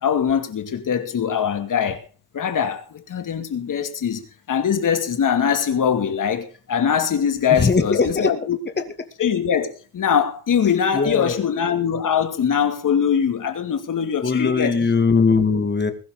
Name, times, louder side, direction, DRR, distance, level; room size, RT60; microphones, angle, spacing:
voice 1, 0.0-2.0 2.3-4.2 4.5-8.6 9.2-14.8, left 7 dB, 55° left, 2.6 m, -22 dB
voice 2, 7.5-8.3 8.8-8.9 10.9-11.4 14.2-15.9, left 4 dB, 25° left, 2.3 m, -20 dB
21.0 x 12.0 x 3.9 m
cardioid pair, 135°, 38 cm